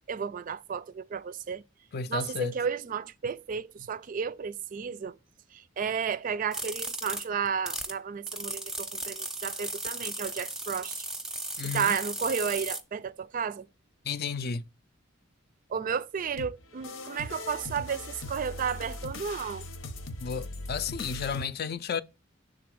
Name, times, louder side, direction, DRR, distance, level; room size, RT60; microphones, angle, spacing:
voice 1, 0.1-1.6 2.1-5.1 5.5-10.9 11.7-13.7 15.7-19.7, right 6 dB, 45° right, 0.3 m, -32 dB
voice 2, 1.9-2.6 11.6-12.0 14.0-14.7 20.2-22.0, left 6 dB, 50° left, 0.4 m, -32 dB
sound 1, 6.5-7.9 8.3-12.8, right 1 dB, 5° right, 0.7 m, -36 dB
sound 2, 16.4-21.4, left 2 dB, 85° left, 0.9 m, -40 dB
6.9 x 3.7 x 4.7 m
head